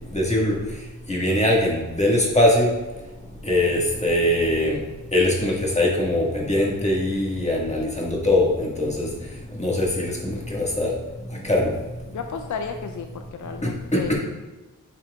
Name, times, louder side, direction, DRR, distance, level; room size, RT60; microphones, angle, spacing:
voice 1, 0.1-0.6 1.1-2.7 3.4-4.8 5.1-9.1 9.5-10.9 11.4-11.7 13.6-14.1, left 1 dB, 20° left, -3 dB, 1.8 m, -22 dB
voice 2, 12.1-14.1, left 5 dB, 60° left, 5 dB, 0.6 m, -33 dB
8.8 x 5.8 x 2.4 m, 1.1 s
wide cardioid pair, 90°, 34 cm